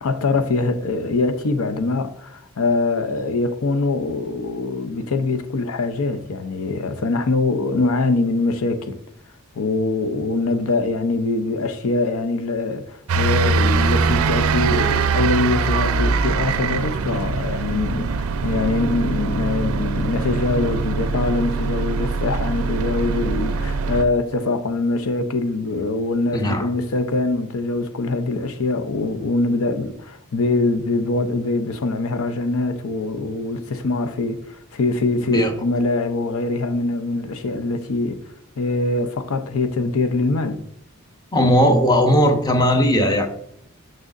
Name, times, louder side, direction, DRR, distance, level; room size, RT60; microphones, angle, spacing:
voice 1, 0.0-9.0 9.6-38.2 38.6-40.6, left 3 dB, 80° left, 0.6 m, -23 dB
sound 1, 13.1-24.0, right 4 dB, 80° right, 0.4 m, -22 dB
voice 2, 26.3-26.7 35.2-35.5 41.3-43.3, equal, 20° left, 0.8 m, -17 dB
6.4 x 6.2 x 2.5 m
head